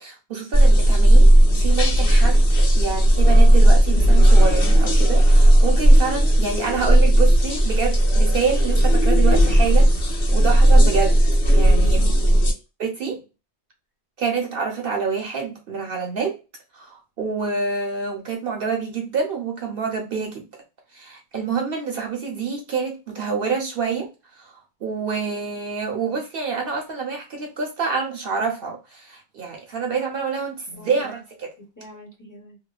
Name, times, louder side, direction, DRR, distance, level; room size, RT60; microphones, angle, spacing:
voice 1, 0.0-11.2 11.5-12.1 12.8-13.2 14.2-16.4 16.7-20.5 20.9-24.1 24.4-24.5 24.8-31.5, right 5 dB, 60° right, 0.8 m, -27 dB
sound 1, 0.5-12.5, right 1 dB, 75° left, 1.3 m, -15 dB
voice 2, 12.0-12.6 30.7-31.2 31.6-32.6, right 1 dB, 20° left, 0.8 m, -44 dB
2.8 x 2.2 x 2.3 m
omnidirectional pair, 1.1 m